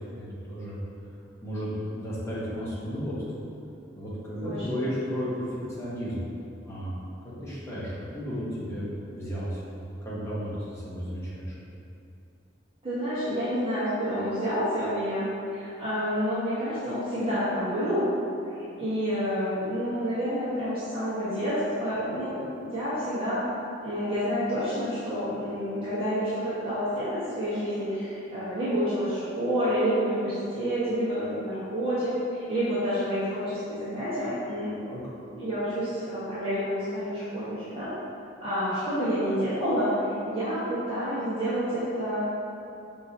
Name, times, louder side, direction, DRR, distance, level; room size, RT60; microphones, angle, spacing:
voice 1, 0.1-0.8 1.4-3.1 4.0-5.5 5.8-6.3 6.6-7.0 7.4-11.5 34.8-35.0, equal, 15° left, -9 dB, 0.9 m, -33 dB
voice 2, 4.4-4.8 12.8-18.1 18.8-23.4 23.8-34.7 35.3-37.9 38.4-42.2, equal, 30° right, -14 dB, 1.2 m, -29 dB
5.3 x 3.0 x 2.7 m, 2.7 s
head